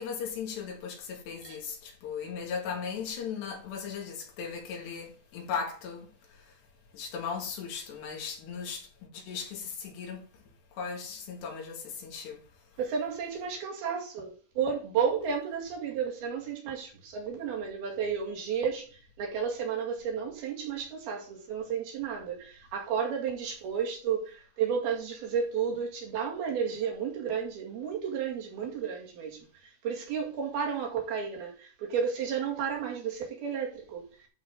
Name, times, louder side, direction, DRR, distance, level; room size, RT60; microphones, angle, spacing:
voice 1, 0.0-6.1 6.9-8.9 9.1-10.2 10.7-12.4, left 6 dB, 75° left, 4.3 m, -37 dB
voice 2, 12.8-14.3 14.6-34.1, right 7 dB, 65° right, 3.9 m, -32 dB
11.5 x 4.4 x 5.4 m
omnidirectional pair, 4.9 m